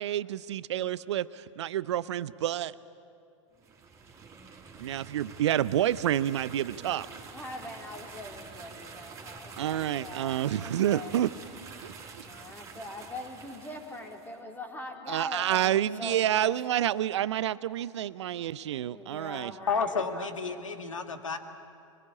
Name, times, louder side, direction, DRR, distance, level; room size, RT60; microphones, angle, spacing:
voice 1, 0.0-2.7 4.8-7.1 9.6-11.3 11.8-12.3 15.1-19.5, right 12 dB, 60° right, 17 dB, 0.7 m, -29 dB
sound 1, 3.5-14.4, right 5 dB, 20° right, 3.9 m, -47 dB
voice 2, 7.3-11.2 12.2-16.5 18.7-20.6, left 1 dB, 10° left, 3 dB, 2.9 m, -42 dB
voice 3, 19.7-21.4, left 5 dB, 80° left, 7 dB, 1.8 m, -31 dB
23.5 x 22.5 x 8.5 m, 2.5 s
figure-of-eight pair, 100°, 16 cm